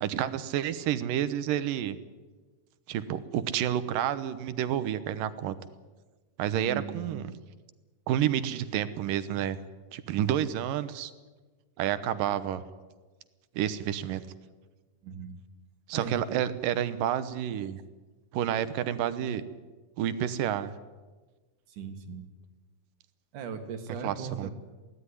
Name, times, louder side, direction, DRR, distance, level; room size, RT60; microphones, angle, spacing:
voice 1, 0.0-2.0 2.9-5.6 6.4-7.3 8.1-9.6 9.9-11.1 11.8-12.6 13.6-14.2 15.9-17.8 18.3-19.4 20.0-20.8 24.0-24.5, right 10 dB, 90° right, 13 dB, 2.8 m, -29 dB
voice 2, 6.7-7.4 15.0-15.4 15.9-16.4 21.7-22.3 23.3-24.5, right 6 dB, 70° right, 7 dB, 3.4 m, -38 dB
23.0 x 17.5 x 9.8 m, 1.3 s
omnidirectional pair, 3.8 m